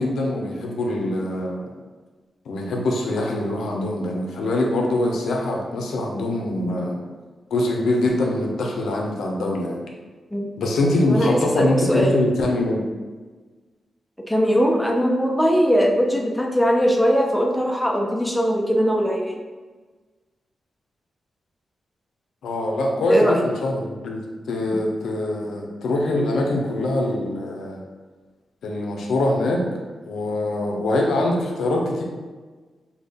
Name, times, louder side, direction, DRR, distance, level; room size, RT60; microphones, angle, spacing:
voice 1, 0.0-1.7 2.5-7.0 7.5-9.8 10.6-12.9 22.4-27.8 28.6-29.6 30.1-32.0, left 1 dB, 85° left, 0 dB, 0.5 m, -23 dB
voice 2, 11.1-12.1 14.3-19.4 23.1-23.4, equal, 5° left, 0 dB, 0.5 m, -20 dB
3.5 x 2.2 x 3.4 m, 1.3 s
cardioid pair, 90°, 0 cm